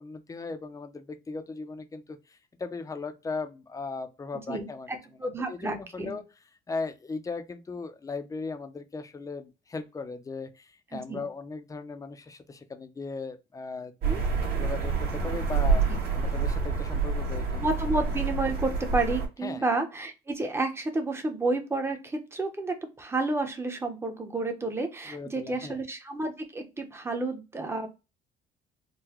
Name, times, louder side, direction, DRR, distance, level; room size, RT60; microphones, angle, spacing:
voice 1, 0.0-4.9 5.5-6.2 6.7-13.9 14.5-15.8 16.1-17.6 19.4-19.6 25.1-25.8, left 4 dB, 20° left, 0.5 m, -37 dB
voice 2, 4.5-6.1 10.9-11.3 14.0-14.2 15.9-16.0 17.6-27.9, right 2 dB, 15° right, 0.8 m, -31 dB
sound 1, 14.0-19.3, right 5 dB, 70° right, 1.5 m, -27 dB
3.8 x 2.2 x 2.9 m
cardioid pair, 110°, 17 cm